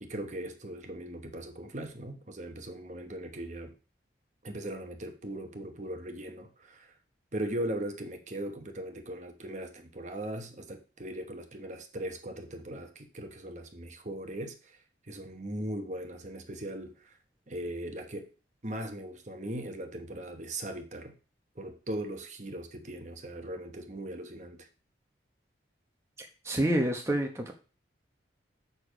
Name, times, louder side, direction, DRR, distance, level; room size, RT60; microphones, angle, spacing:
voice 1, 0.0-3.7 4.4-7.0 7.3-14.8 15.1-17.2 17.5-18.3 18.6-21.1 21.5-24.7, right 1 dB, 40° right, 1.1 m, -39 dB
voice 2, 26.4-27.5, right 1 dB, 15° right, 1.0 m, -27 dB
6.9 x 6.7 x 5.0 m
head